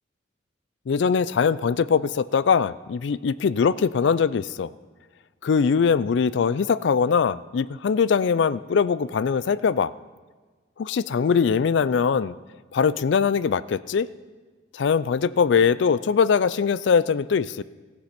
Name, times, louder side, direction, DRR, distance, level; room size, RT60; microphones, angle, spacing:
voice 1, 0.9-4.7 5.4-9.9 10.8-12.4 12.7-14.1 14.7-17.6, left 6 dB, 65° left, 18 dB, 0.4 m, -22 dB
15.5 x 8.5 x 5.9 m, 1.4 s
head